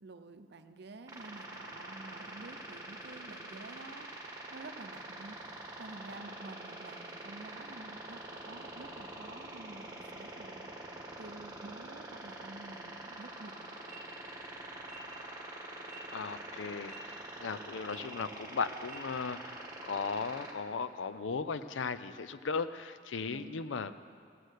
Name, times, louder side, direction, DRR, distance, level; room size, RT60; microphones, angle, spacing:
voice 1, 0.0-4.1 4.5-5.4 5.8-10.7 11.2-13.8 23.3-23.6, right 2 dB, 60° right, 8 dB, 0.7 m, -50 dB
sound 1, 1.1-20.5, right 2 dB, 20° right, 1.6 m, -45 dB
sound 2, 13.9-14.0 14.8-15.0 15.8-16.0 16.8-17.0 17.8-18.0 18.8-19.0, right 4 dB, 30° left, 2.9 m, -53 dB
voice 2, 16.1-23.9, left 5 dB, 90° left, 13 dB, 0.5 m, -37 dB
16.0 x 6.5 x 8.1 m, 2.2 s
head